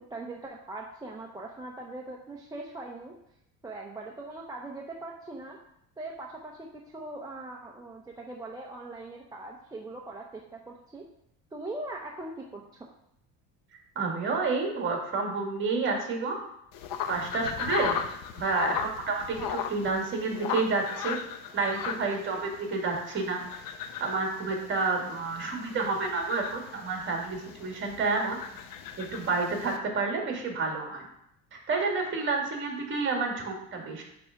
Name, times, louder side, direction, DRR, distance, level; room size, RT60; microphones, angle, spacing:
voice 1, 0.0-3.1 3.6-5.6 6.0-6.7 6.9-11.0 11.5-12.9, right 2 dB, 10° right, -2 dB, 0.6 m, -41 dB
voice 2, 14.0-16.4 17.1-18.0 18.4-21.2 21.5-23.4 24.0-28.4 29.0-31.0 31.5-34.0, right 3 dB, 30° right, 1 dB, 2.0 m, -29 dB
sound 1, 16.7-29.8, left 8 dB, 60° left, 0.8 m, -37 dB
9.7 x 3.6 x 5.8 m, 0.77 s
cardioid pair, 155°, 37 cm